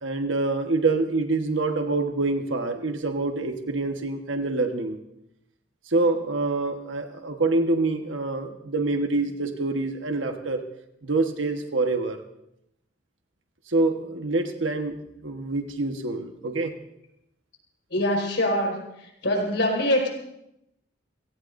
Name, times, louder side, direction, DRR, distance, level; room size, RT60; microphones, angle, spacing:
voice 1, 0.0-5.0 5.9-10.6 11.0-12.2 13.7-15.0 15.2-16.7, right 3 dB, 90° right, 5 dB, 1.4 m, -26 dB
voice 2, 17.9-18.8 19.0-20.1, left 1 dB, 70° left, 1 dB, 4.9 m, -24 dB
29.5 x 17.5 x 2.7 m, 0.81 s
head